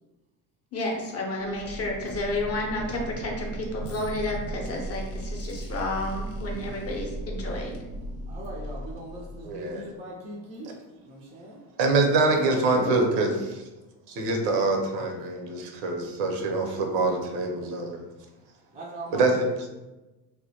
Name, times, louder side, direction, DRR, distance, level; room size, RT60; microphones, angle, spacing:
voice 1, 0.7-7.8 12.7-12.9, left 1 dB, 30° left, 0 dB, 0.6 m, -31 dB
sound 1, 1.4-9.9, right 1 dB, 85° left, 0.7 m, -36 dB
voice 2, 8.3-10.7 11.0-11.6 12.2-12.9 15.0-15.4 17.5-17.6 18.7-19.4, right 1 dB, 15° right, -3 dB, 0.3 m, -41 dB
voice 3, 9.4-9.9 11.8-13.5 14.1-18.0 19.1-19.5, right 3 dB, 75° right, 3 dB, 0.6 m, -25 dB
2.1 x 2.1 x 2.7 m, 1.1 s
hypercardioid pair, 70°, 49 cm